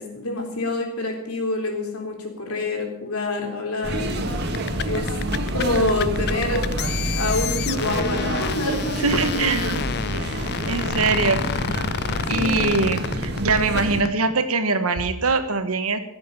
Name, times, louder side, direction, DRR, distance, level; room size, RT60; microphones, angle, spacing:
voice 1, 0.0-4.1 4.8-5.1 5.5-6.7 7.1-9.7 12.3-12.7, left 2 dB, 90° left, 2 dB, 3.7 m, -27 dB
sound 1, 3.8-14.0, right 1 dB, 50° right, 1.8 m, -27 dB
sound 2, 4.4-14.1, left 8 dB, 50° left, 0.4 m, -30 dB
voice 2, 9.0-9.7 10.3-10.4 10.7-11.5 12.3-16.0, right 3 dB, 80° right, 9 dB, 1.5 m, -22 dB
17.0 x 7.7 x 7.1 m, 0.86 s
head